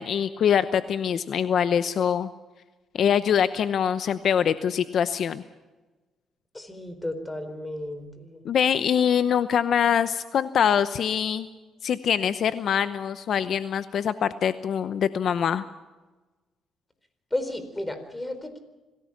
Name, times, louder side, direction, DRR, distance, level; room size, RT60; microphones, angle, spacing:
voice 1, 0.0-2.3 2.9-5.4 8.4-11.5 11.8-15.6, left 8 dB, 65° left, 12 dB, 0.8 m, -24 dB
voice 2, 6.5-8.4 17.3-18.6, left 1 dB, 15° left, 9 dB, 4.3 m, -33 dB
26.0 x 17.5 x 6.0 m, 1.2 s
cardioid pair, 90°, 0 cm